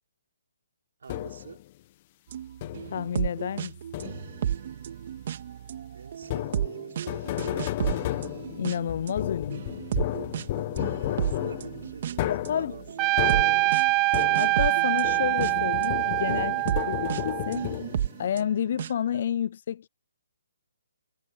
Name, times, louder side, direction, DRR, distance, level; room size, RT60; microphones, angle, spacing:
voice 1, 1.0-1.6 5.9-8.2 11.1-13.6, right 6 dB, 70° right, 5.2 m, -46 dB
sound 1, 1.1-1.6 2.6-3.1 3.9-4.5 6.2-14.7 15.0-18.2, left 15 dB, 35° left, 1.6 m, -33 dB
sound 2, 2.3-15.9 16.3-19.2, right 10 dB, 50° right, 2.6 m, -33 dB
voice 2, 2.8-3.8 8.5-9.7 12.3-12.7 14.3-17.6 18.2-19.9, left 9 dB, 50° left, 0.4 m, -30 dB
Trumpet, 13.0-17.7, right 23 dB, 20° right, 0.7 m, -25 dB
hypercardioid pair, 155°, 0 cm